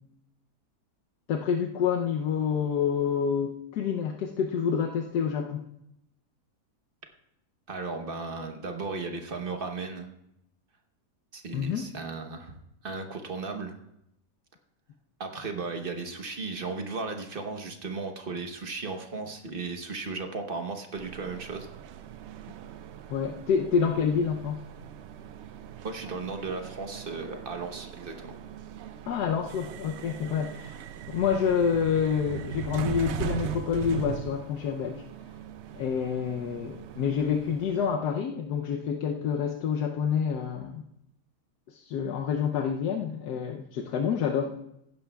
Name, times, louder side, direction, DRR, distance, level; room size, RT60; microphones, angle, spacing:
voice 1, 1.3-5.6 11.5-11.9 23.1-24.6 29.1-30.8 31.1-35.0 35.8-40.8 41.7-44.5, left 7 dB, 85° left, 3 dB, 1.3 m, -28 dB
voice 2, 7.7-10.1 11.3-13.7 15.2-21.7 25.8-28.3, right 4 dB, 40° right, 5 dB, 1.0 m, -35 dB
sound 1, 21.0-38.0, right 8 dB, 70° right, 0.6 m, -40 dB
15.5 x 11.0 x 2.3 m, 0.81 s
omnidirectional pair, 1.7 m